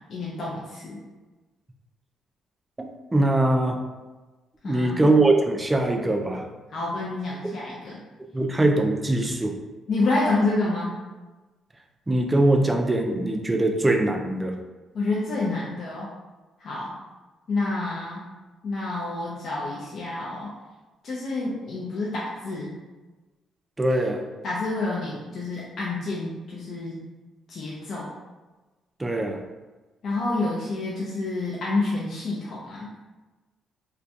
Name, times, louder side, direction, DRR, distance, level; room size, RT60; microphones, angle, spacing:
voice 1, 0.1-1.0 4.6-5.1 6.7-8.0 9.9-10.9 14.9-16.1 16.6-16.9 17.5-18.2 18.6-20.5 21.0-22.7 24.4-27.0 27.5-28.1 30.0-32.9, left 2 dB, 60° left, -6 dB, 0.4 m, -28 dB
voice 2, 2.8-3.8 4.6-6.4 8.3-9.6 12.1-14.5 23.8-24.2 29.0-29.4, right 2 dB, 15° right, 3 dB, 0.3 m, -22 dB
2.3 x 2.1 x 2.7 m, 1.2 s
cardioid pair, 90°, 0 cm